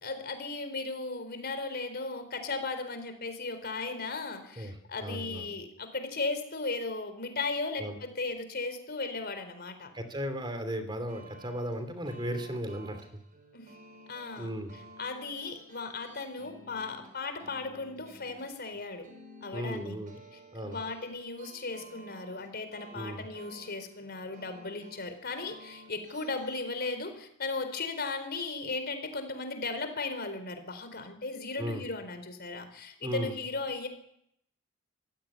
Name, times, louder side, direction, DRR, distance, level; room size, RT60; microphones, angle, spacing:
voice 1, 0.0-9.9 13.5-13.7 14.1-14.5 15.0-19.1 19.4-20.0 20.6-33.9, left 3 dB, 50° left, 9 dB, 4.4 m, -36 dB
voice 2, 5.0-5.5 7.8-8.0 9.9-13.2 14.4-14.7 19.5-20.2 20.5-20.8 22.9-23.2 31.6-31.8 33.0-33.3, equal, 25° right, 9 dB, 2.9 m, -36 dB
sound 1, 11.1-26.6, right 1 dB, 45° right, 5.5 m, -53 dB
25.0 x 16.5 x 10.0 m, 0.75 s
head